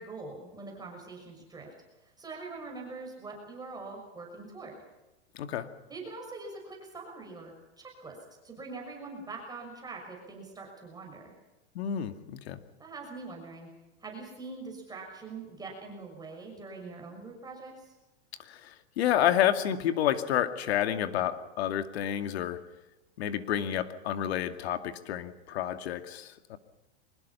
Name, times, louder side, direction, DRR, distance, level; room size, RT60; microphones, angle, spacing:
voice 1, 0.0-1.7 2.0-4.8 5.9-8.2 8.4-11.3 12.8-13.7 14.0-17.9, right 3 dB, 10° right, 0 dB, 6.2 m, -43 dB
voice 2, 5.3-5.7 11.7-12.6 18.4-22.6 23.2-26.6, left 10 dB, 65° left, 8 dB, 2.3 m, -29 dB
24.0 x 21.0 x 5.7 m, 1.1 s
hypercardioid pair, 130°, 33 cm